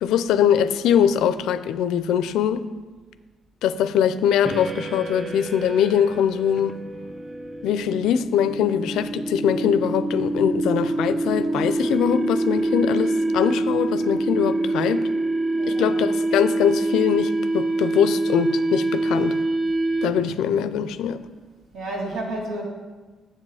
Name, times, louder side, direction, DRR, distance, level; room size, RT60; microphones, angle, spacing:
voice 1, 0.0-2.6 3.6-6.7 7.6-15.0 15.7-19.4 20.0-21.2, left 8 dB, 85° left, 13 dB, 0.4 m, -22 dB
sound 1, 4.4-20.4, right 2 dB, 30° right, 0.4 m, -25 dB
voice 2, 15.5-16.0 21.7-22.6, right 1 dB, 75° right, -2 dB, 2.5 m, -31 dB
7.5 x 7.4 x 4.8 m, 1.3 s
cardioid pair, 90°, 0 cm